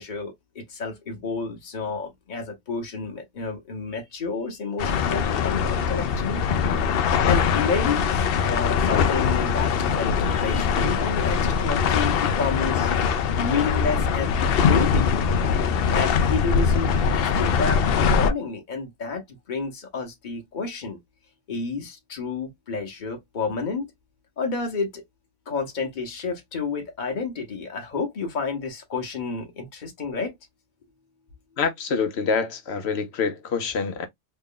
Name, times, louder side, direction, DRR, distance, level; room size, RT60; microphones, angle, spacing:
voice 1, 0.0-6.4 7.3-12.9 13.4-14.3 14.6-15.1 15.9-17.8 18.1-21.0 21.5-23.9 24.4-25.0 25.5-30.3, left 4 dB, 50° left, 1.1 m, -30 dB
sound 1, 4.8-18.3, left 6 dB, 70° left, 0.7 m, -22 dB
voice 2, 31.6-34.1, left 5 dB, 90° left, 1.1 m, -26 dB
3.2 x 2.3 x 3.7 m
omnidirectional pair, 1.1 m